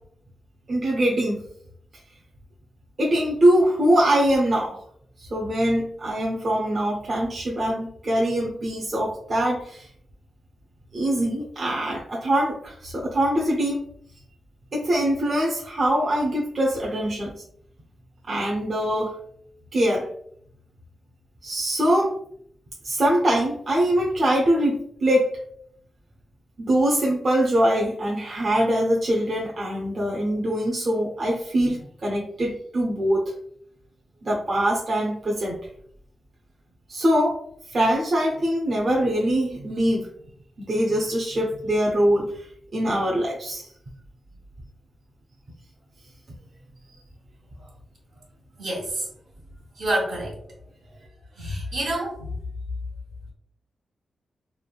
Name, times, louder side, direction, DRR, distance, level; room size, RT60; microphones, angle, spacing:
voice 1, 0.7-1.4 3.0-4.8 5.2-9.9 10.9-13.8 14.7-17.3 18.3-19.1 19.7-20.1 21.4-22.1 22.8-25.4 26.6-33.2 34.2-35.6 36.9-37.3 37.7-40.1 40.6-43.7, right 1 dB, 55° right, -3 dB, 0.6 m, -23 dB
voice 2, 48.6-49.0 49.8-50.3 51.4-52.3, right 1 dB, 80° right, -3 dB, 1.2 m, -27 dB
3.2 x 2.2 x 2.3 m, 0.67 s
cardioid pair, 90°, 0 cm